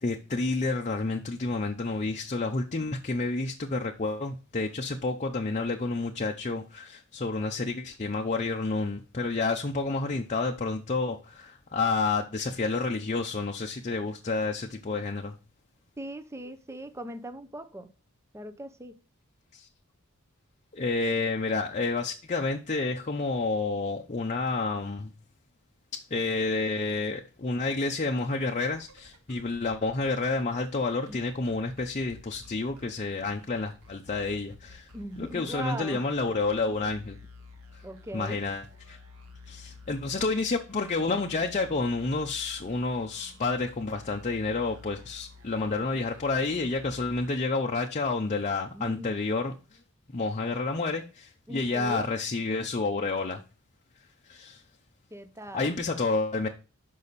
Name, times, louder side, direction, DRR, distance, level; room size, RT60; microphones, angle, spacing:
voice 1, 0.0-15.4 19.5-19.7 20.7-25.1 25.9-34.9 35.2-37.2 37.7-37.8 38.1-39.0 39.5-49.5 50.1-53.4 54.3-54.6 55.5-56.5, left 3 dB, 35° left, 0.7 m, -29 dB
voice 2, 16.0-17.9 18.3-19.0 31.1-31.2 34.9-36.4 37.8-38.4 48.7-49.2 51.5-52.0 55.1-55.8, equal, 15° right, 0.7 m, -40 dB
sound 1, 28.2-47.8, left 3 dB, 70° right, 1.6 m, -52 dB
6.8 x 5.5 x 4.1 m
head